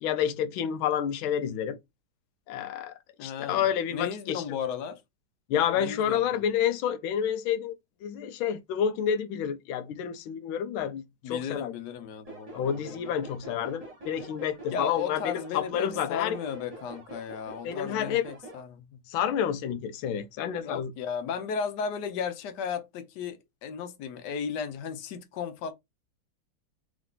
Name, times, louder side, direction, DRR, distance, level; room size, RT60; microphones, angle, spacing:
voice 1, 0.0-1.8 2.5-2.9 3.2-4.6 5.5-7.7 8.0-11.7 12.5-16.4 17.6-18.3 19.1-20.9, left 9 dB, 85° left, 1.4 m, -29 dB
voice 2, 3.2-3.6 3.9-5.0 5.7-6.4 11.2-13.1 14.7-19.0 20.6-25.7, left 7 dB, 65° left, 1.3 m, -35 dB
sound 1, 12.3-18.6, right 2 dB, 20° right, 1.6 m, -45 dB
3.7 x 3.1 x 3.8 m
omnidirectional pair, 2.2 m